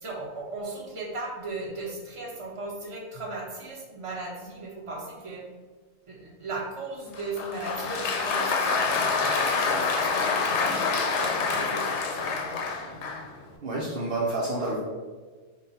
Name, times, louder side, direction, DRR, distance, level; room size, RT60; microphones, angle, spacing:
voice 1, 0.0-5.4 6.1-10.8 11.2-12.6, right 2 dB, 30° right, -4 dB, 0.9 m, -37 dB
Applause, 7.1-13.3, left 4 dB, 75° left, 0.9 m, -27 dB
voice 2, 13.6-14.8, right 2 dB, 55° right, -4 dB, 0.8 m, -28 dB
5.3 x 2.2 x 4.1 m, 1.4 s
omnidirectional pair, 1.2 m